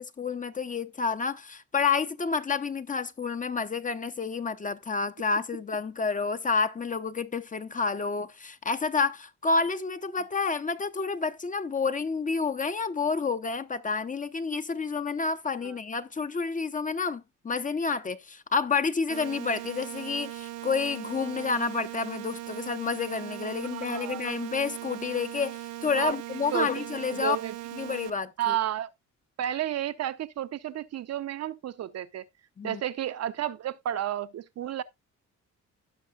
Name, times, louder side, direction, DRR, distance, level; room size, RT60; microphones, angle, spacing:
voice 1, 0.0-27.4 27.7-28.6 32.6-32.8, left 5 dB, 25° left, 0.7 m, -29 dB
sound 1, 19.1-28.1, right 15 dB, 85° right, 1.2 m, -39 dB
voice 2, 23.7-24.2 26.0-26.1 26.5-27.5 28.4-28.9 29.4-32.3 32.6-34.8, right 12 dB, 60° right, 0.7 m, -32 dB
16.5 x 5.5 x 2.3 m
cardioid pair, 90°, 30 cm